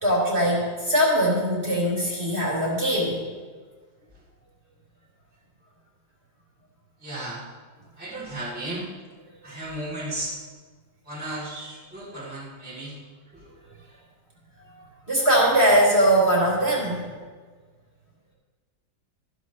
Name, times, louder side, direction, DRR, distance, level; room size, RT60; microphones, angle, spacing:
voice 1, 0.0-3.2 15.1-17.0, equal, 30° right, -4 dB, 3.5 m, -21 dB
voice 2, 7.0-7.4 8.0-8.9 9.4-10.3 11.0-12.9 13.3-13.4, right 1 dB, 5° right, -9 dB, 2.9 m, -34 dB
14.5 x 12.5 x 3.1 m, 1.5 s
omnidirectional pair, 2.1 m